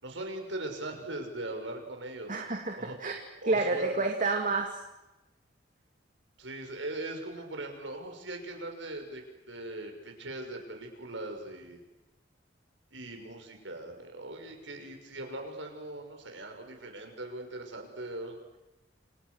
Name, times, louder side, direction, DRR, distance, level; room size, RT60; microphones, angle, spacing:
voice 1, 0.0-2.3 2.8-3.0 3.4-4.0 6.4-11.8 12.9-18.4, right 2 dB, 90° right, 4 dB, 6.2 m, -40 dB
voice 2, 2.3-3.2 3.5-4.8, right 3 dB, 45° right, 2 dB, 2.4 m, -29 dB
29.0 x 28.0 x 6.5 m, 0.97 s
head